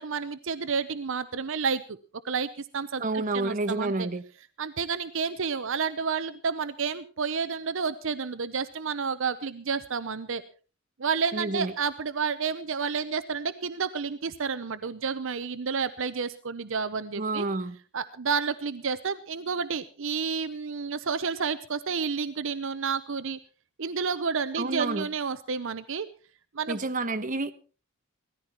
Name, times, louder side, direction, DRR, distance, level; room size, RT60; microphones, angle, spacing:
voice 1, 0.0-2.0 2.2-4.1 4.6-10.4 11.0-17.5 17.9-23.4 23.8-26.1 26.5-26.8, right 5 dB, 65° right, 13 dB, 0.8 m, -30 dB
voice 2, 3.0-4.2 11.3-11.7 17.2-17.8 24.6-25.1 26.7-27.5, right 2 dB, 40° right, 9 dB, 1.1 m, -29 dB
17.5 x 14.5 x 4.4 m, 0.36 s
head